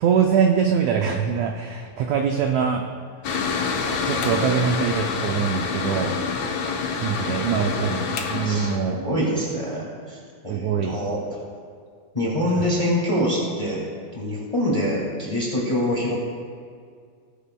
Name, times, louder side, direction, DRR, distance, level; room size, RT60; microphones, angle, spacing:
voice 1, 0.0-2.8 4.0-6.2 7.0-9.0 10.5-11.0, right 7 dB, 85° right, 2 dB, 1.6 m, -23 dB
Mechanical fan, 3.2-8.8, left 5 dB, 70° left, 1.7 m, -27 dB
voice 2, 7.2-7.9 8.4-11.4 12.1-13.8 14.1-16.2, equal, 15° left, -5 dB, 1.5 m, -25 dB
17.0 x 9.9 x 2.2 m, 2.1 s
omnidirectional pair, 4.0 m